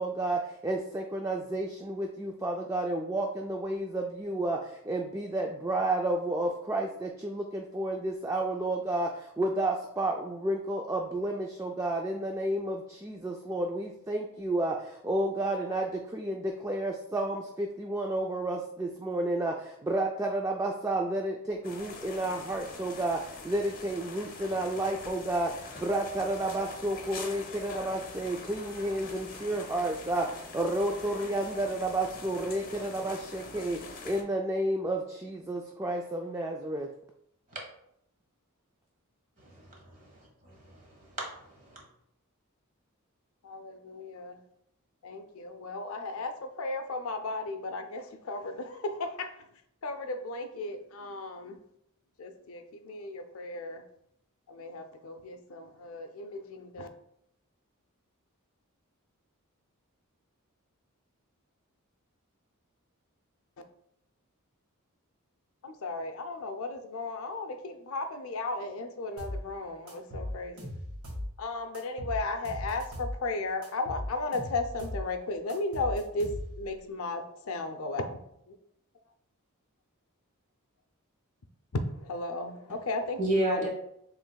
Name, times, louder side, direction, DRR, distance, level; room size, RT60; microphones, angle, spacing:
voice 1, 0.0-36.9, right 1 dB, 15° right, 0.3 m, -31 dB
sound 1, 21.6-34.2, left 4 dB, 40° left, 0.9 m, -44 dB
voice 2, 39.4-41.2 41.6-41.8 83.2-83.7, right 1 dB, 35° right, 1.4 m, -32 dB
voice 3, 43.4-44.4 45.0-49.3 49.8-51.6 52.2-53.8 54.5-56.9 65.6-70.7 71.4-76.3 76.6-78.2 78.5-78.6 82.0-83.7, left 2 dB, 65° left, 0.5 m, -35 dB
sound 2, 69.2-69.4 69.9-71.3 71.7-73.2 73.6-75.0 75.5-76.7, left 1 dB, 85° right, 1.7 m, -38 dB
7.2 x 3.2 x 2.3 m
head